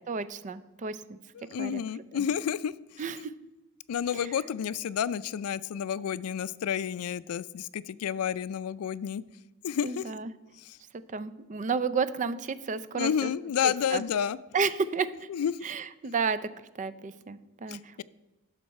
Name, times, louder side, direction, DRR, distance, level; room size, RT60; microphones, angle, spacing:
voice 1, 0.0-1.2 1.6-1.8 2.1-2.2 3.0-3.3 4.1-4.2 9.8-10.3 11.1-13.3 13.6-14.0 14.5-15.1 15.6-16.4 16.8-17.8, right 5 dB, 35° right, 14 dB, 0.4 m, -31 dB
voice 2, 1.3-2.7 3.9-9.2 9.6-10.0 12.9-14.4 15.3-15.5 17.7-18.0, left 8 dB, 90° left, 18 dB, 0.4 m, -30 dB
11.0 x 6.6 x 4.2 m, 1.1 s
head